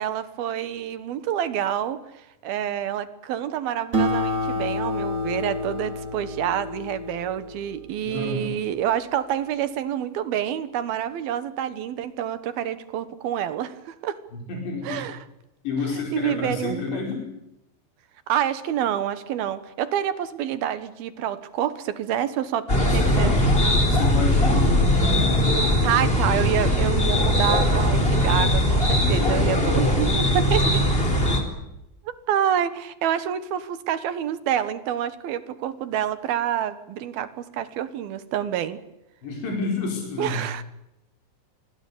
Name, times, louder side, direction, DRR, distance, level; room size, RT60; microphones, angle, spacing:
voice 1, 0.0-14.2 14.8-15.2 15.9-17.0 18.3-23.3 25.8-30.8 32.0-38.8 40.2-40.6, right 10 dB, 65° right, 14 dB, 2.8 m, -27 dB
Acoustic guitar, 3.9-8.8, left 1 dB, 20° right, 2.7 m, -29 dB
voice 2, 8.1-8.5 14.3-15.0 15.6-17.3 22.9-23.6 23.9-24.8 29.0-30.2 39.2-40.4, left 3 dB, 70° left, 1 dB, 7.6 m, -29 dB
sound 1, 22.7-31.4, left 1 dB, 15° left, 4.0 m, -20 dB
27.0 x 21.0 x 8.6 m, 0.88 s
omnidirectional pair, 5.1 m